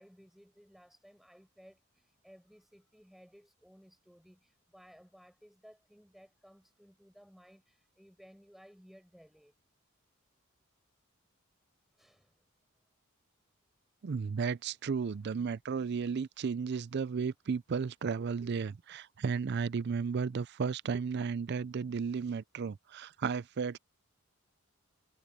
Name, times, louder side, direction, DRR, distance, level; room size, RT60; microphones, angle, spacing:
voice 1, 0.0-9.5 12.0-12.3 15.0-15.1, equal, ahead, 5.9 m, -59 dB
voice 2, 14.0-23.8, right 5 dB, 50° right, 0.4 m, -34 dB
head